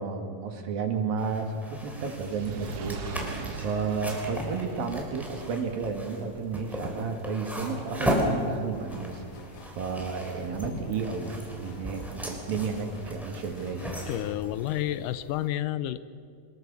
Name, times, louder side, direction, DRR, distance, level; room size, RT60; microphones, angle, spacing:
voice 1, 0.0-13.9, right 5 dB, 85° right, 4 dB, 4.0 m, -32 dB
sound 1, 1.2-15.5, equal, ahead, 3.3 m, -36 dB
Fire, 2.1-8.5 9.2-9.3, right 4 dB, 50° right, 2.1 m, -42 dB
sound 2, 8.7-14.3, left 5 dB, 60° left, 2.6 m, -50 dB
voice 2, 14.1-16.0, left 13 dB, 80° left, 14 dB, 2.2 m, -30 dB
24.5 x 20.5 x 7.2 m, 2.4 s
omnidirectional pair, 4.0 m